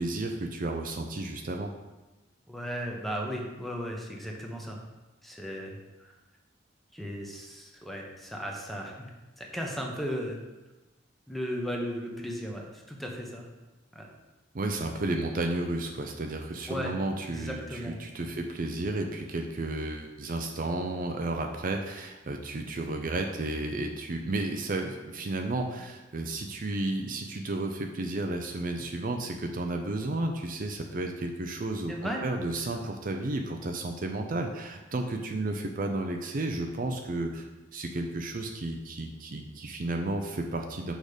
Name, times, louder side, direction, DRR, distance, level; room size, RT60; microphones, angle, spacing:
voice 1, 0.0-1.7 14.5-40.9, right 2 dB, 50° right, 4 dB, 0.6 m, -32 dB
voice 2, 2.5-4.8 5.2-6.1 6.9-8.9 9.4-10.4 11.3-13.5 13.9-14.1 16.7-16.9 17.3-18.4 31.9-32.2 32.7-32.9, equal, ahead, 0 dB, 1.1 m, -36 dB
6.5 x 5.1 x 5.0 m, 1.1 s
head